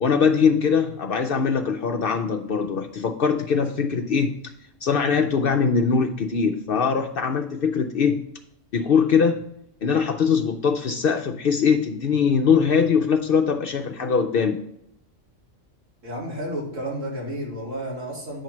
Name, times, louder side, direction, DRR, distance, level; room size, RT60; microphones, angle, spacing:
voice 1, 0.0-4.5 4.8-8.3 8.7-9.4 9.8-14.6, left 6 dB, 60° left, 5 dB, 0.6 m, -22 dB
voice 2, 16.0-18.4, equal, 80° right, -3 dB, 2.4 m, -31 dB
9.1 x 3.1 x 5.8 m, 0.73 s
omnidirectional pair, 1.3 m